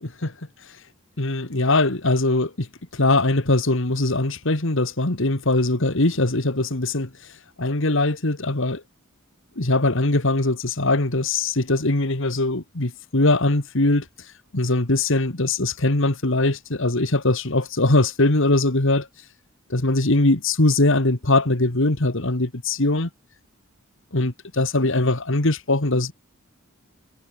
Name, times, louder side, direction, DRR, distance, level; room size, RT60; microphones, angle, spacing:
voice 1, 0.0-0.3 1.2-2.7 2.9-7.1 7.6-8.8 9.6-14.1 14.5-19.1 19.7-23.1 24.1-26.1, left 2 dB, 65° left, 2.2 m, -21 dB
head